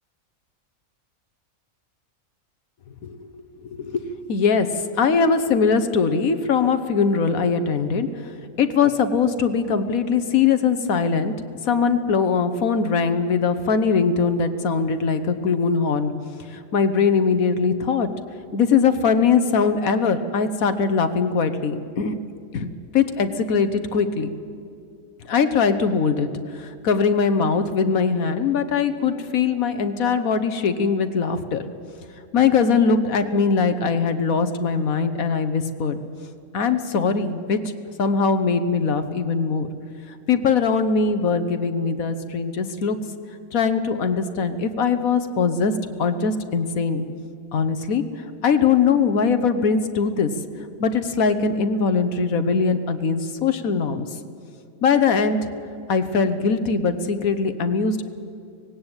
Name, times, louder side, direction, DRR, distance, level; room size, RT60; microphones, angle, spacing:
voice 1, 3.0-8.3 8.6-11.3 11.6-16.1 16.5-18.1 18.5-22.1 22.5-24.3 25.2-31.7 32.3-36.0 36.5-37.6 38.0-39.7 40.1-43.0 43.5-45.7 46.0-47.0 47.5-48.0 48.4-50.3 50.8-54.1 54.8-55.5 55.9-58.1, left 5 dB, 75° left, 10 dB, 1.4 m, -21 dB
18.5 x 17.0 x 8.9 m, 2.5 s
omnidirectional pair, 1.5 m